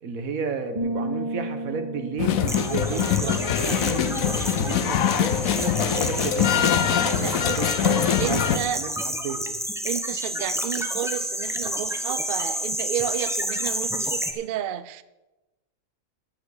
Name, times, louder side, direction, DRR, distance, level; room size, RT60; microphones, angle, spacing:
voice 1, 0.0-9.6, right 5 dB, 90° right, 1.6 m, -33 dB
sound 1, 0.8-4.5, right 1 dB, 30° right, 1.9 m, -34 dB
sound 2, 2.2-8.6, left 9 dB, 80° left, 1.1 m, -23 dB
sound 3, 2.5-14.3, equal, 5° right, 0.7 m, -30 dB
voice 2, 2.9-3.8 7.1-7.6 8.2-8.8 9.8-15.0, right 11 dB, 60° right, 0.5 m, -32 dB
13.5 x 8.5 x 4.8 m
omnidirectional pair, 1.4 m